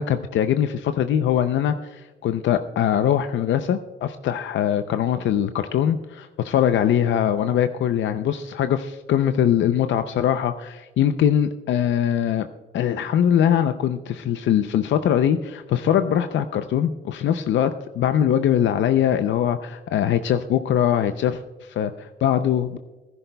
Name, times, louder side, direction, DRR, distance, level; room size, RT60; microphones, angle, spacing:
voice 1, 0.0-12.5 12.7-22.8, left 9 dB, 85° left, 9 dB, 0.5 m, -22 dB
17.5 x 11.0 x 2.3 m, 1.2 s
cardioid pair, 110°, 19 cm